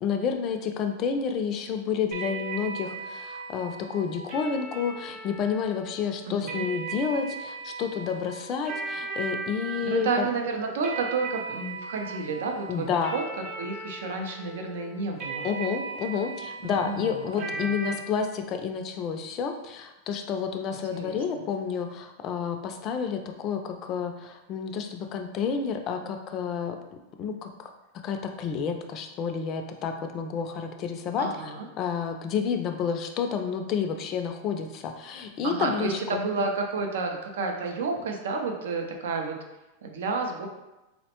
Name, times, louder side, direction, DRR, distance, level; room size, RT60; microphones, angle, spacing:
voice 1, 0.0-10.3 12.7-13.1 15.4-26.8 27.2-27.5 28.0-31.3 31.8-36.0, left 6 dB, 35° left, 5 dB, 0.3 m, -30 dB
sound 1, 2.1-17.9, right 4 dB, 40° right, 0.6 m, -38 dB
voice 2, 6.2-6.7 9.9-15.5 16.6-18.0 20.9-21.5 31.2-31.7 35.4-39.4 39.8-40.5, right 4 dB, 85° right, 3 dB, 0.5 m, -31 dB
4.0 x 2.1 x 2.8 m, 0.99 s
supercardioid pair, 150°, 0 cm